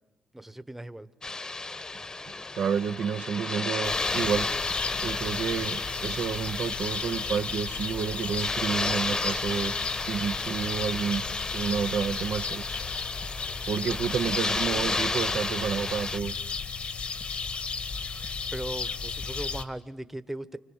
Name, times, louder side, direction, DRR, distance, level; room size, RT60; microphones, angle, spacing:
voice 1, 0.3-1.1 18.5-20.6, right 1 dB, 10° right, 1.1 m, -38 dB
sound 1, 1.2-16.2, left 3 dB, 30° left, 1.2 m, -33 dB
voice 2, 2.5-4.5 4.9-9.7 10.1-11.3 11.5-12.6 13.7-16.3, right 7 dB, 70° right, 0.8 m, -30 dB
sound 2, 3.8-19.6, left 5 dB, 55° left, 1.7 m, -34 dB
29.0 x 25.0 x 8.0 m
cardioid pair, 65°, 3 cm